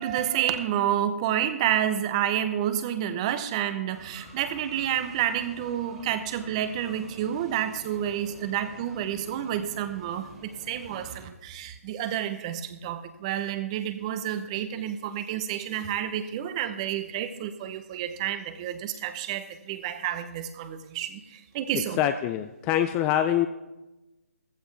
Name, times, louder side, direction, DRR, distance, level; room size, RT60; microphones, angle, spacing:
voice 1, 0.0-22.0, right 10 dB, 25° right, 11 dB, 0.9 m, -29 dB
sound 1, 3.9-11.3, right 1 dB, 5° right, 2.2 m, -49 dB
voice 2, 21.7-23.5, left 11 dB, 15° left, 9 dB, 0.3 m, -25 dB
15.0 x 14.5 x 3.4 m, 1.0 s
figure-of-eight pair, 155°, 8 cm